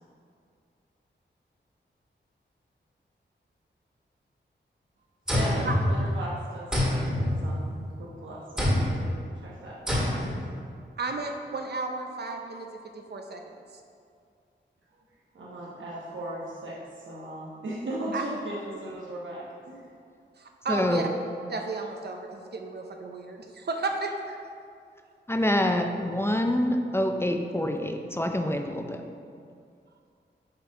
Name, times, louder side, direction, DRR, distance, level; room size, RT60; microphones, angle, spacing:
sound 1, 5.3-6.3 6.7-8.0 8.6-9.1 9.9-10.5, left 1 dB, 5° right, 1.7 m, -26 dB
voice 1, 5.3-7.7 8.0-9.1 9.4-10.4 15.3-19.9, right 1 dB, 80° right, -5 dB, 1.0 m, -38 dB
voice 2, 11.0-12.7 12.9-13.8 18.1-18.2 20.4-21.1 21.5-24.4, right 3 dB, 60° right, 3 dB, 0.6 m, -33 dB
voice 3, 20.7-21.1 25.3-29.0, left 1 dB, 10° left, 4 dB, 0.4 m, -26 dB
6.7 x 4.4 x 4.9 m, 2.3 s
wide cardioid pair, 105°, 20 cm